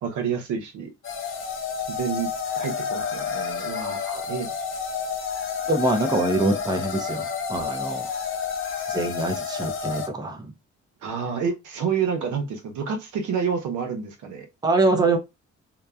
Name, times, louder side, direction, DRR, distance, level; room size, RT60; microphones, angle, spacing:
voice 1, 0.0-0.9 1.9-2.3 2.6-4.5 11.0-14.5, right 6 dB, 75° right, 0.8 m, -29 dB
sound 1, 1.0-10.1, left 6 dB, 45° left, 0.7 m, -30 dB
voice 2, 5.7-8.1 8.9-10.5 14.6-15.2, right 2 dB, 15° right, 0.6 m, -24 dB
2.9 x 2.2 x 2.3 m
cardioid pair, 90°, 30 cm